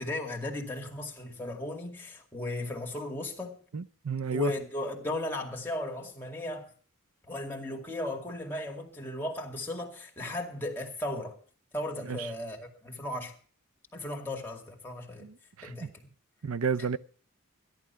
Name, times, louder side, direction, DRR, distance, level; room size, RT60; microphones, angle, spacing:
voice 1, 0.0-3.6 4.3-6.7 7.2-11.4 11.7-13.3 13.9-15.3 15.6-16.1, left 1 dB, 10° left, 2.3 m, -36 dB
voice 2, 3.7-4.5 12.1-12.3 15.2-15.9 16.4-17.0, right 5 dB, 70° right, 0.5 m, -32 dB
13.5 x 11.5 x 5.7 m
head